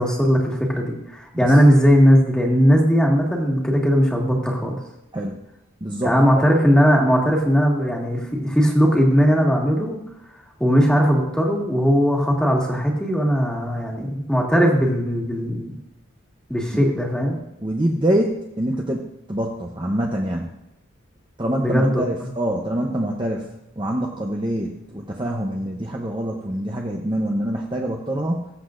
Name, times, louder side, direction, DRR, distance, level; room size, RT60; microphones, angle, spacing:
voice 1, 0.0-4.8 6.0-10.0 10.6-15.8 16.5-17.4 21.6-22.3, equal, 5° left, -2 dB, 1.8 m, -18 dB
voice 2, 5.8-6.5 16.7-16.8 17.6-20.5 21.4-23.5 23.8-28.5, right 1 dB, 20° right, 0 dB, 0.8 m, -25 dB
20.0 x 7.7 x 2.6 m, 0.88 s
head